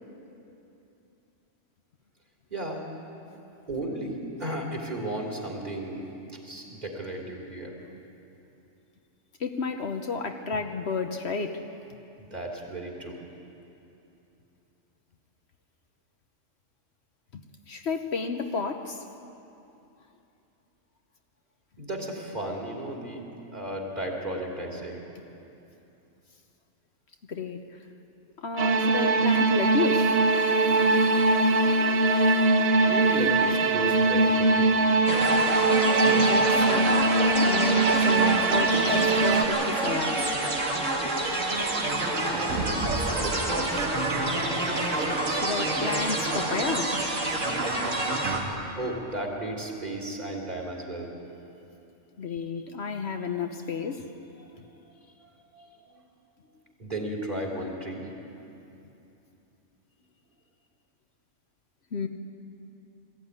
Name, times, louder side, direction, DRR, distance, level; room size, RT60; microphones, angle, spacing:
voice 1, 2.5-2.8 3.7-6.0 6.4-7.7 12.2-13.2 21.8-23.2 23.5-25.0 32.9-34.8 42.3-43.9 48.8-51.1 52.3-52.4 55.2-56.0 56.8-58.1, right 1 dB, 35° right, -1 dB, 3.1 m, -34 dB
voice 2, 9.4-11.6 17.3-19.0 27.3-27.8 28.4-30.1 36.0-37.0 37.4-40.3 45.3-46.9 52.2-54.0 58.4-58.5 61.9-62.1, left 4 dB, 60° left, 5 dB, 1.2 m, -31 dB
sound 1, 28.6-39.4, right 3 dB, 55° right, 1.1 m, -22 dB
sound 2, 35.1-48.4, right 2 dB, 80° right, 2.6 m, -27 dB
20.5 x 14.5 x 9.6 m, 2.8 s
omnidirectional pair, 1.3 m